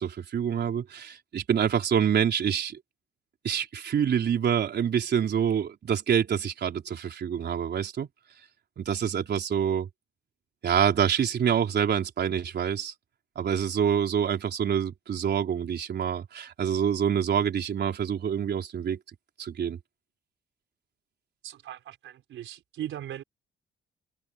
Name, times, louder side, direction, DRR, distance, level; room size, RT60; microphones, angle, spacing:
voice 1, 0.0-2.8 3.4-8.1 8.8-9.9 10.6-12.9 13.4-19.0 19.4-19.8, right 8 dB, 55° right, 4.1 m, -26 dB
voice 2, 21.4-23.2, right 12 dB, 75° right, 4.6 m, -39 dB
cardioid pair, 90°, 20 cm